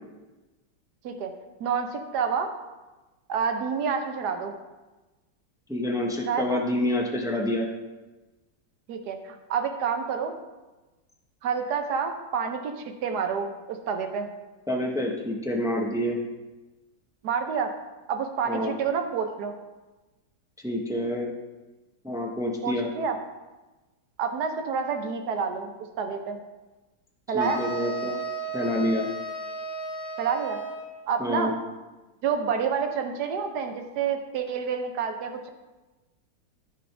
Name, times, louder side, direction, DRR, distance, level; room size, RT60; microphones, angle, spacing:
voice 1, 1.6-2.5 3.3-4.6 6.2-6.6 8.9-10.3 11.4-14.3 17.2-17.7 18.1-19.5 22.6-23.2 24.2-25.7 26.0-26.4 27.3-27.6 30.2-30.6 31.1-31.5 32.2-35.5, right 6 dB, 65° right, 6 dB, 1.3 m, -28 dB
voice 2, 5.7-7.7 14.7-16.2 18.5-18.7 20.6-21.3 22.0-22.9 27.3-28.2 28.5-29.1 31.2-31.5, left 1 dB, 5° right, 0 dB, 0.6 m, -27 dB
sound 1, 27.4-31.1, right 3 dB, 60° left, 1.5 m, -34 dB
14.5 x 5.2 x 3.4 m, 1.1 s
omnidirectional pair, 2.0 m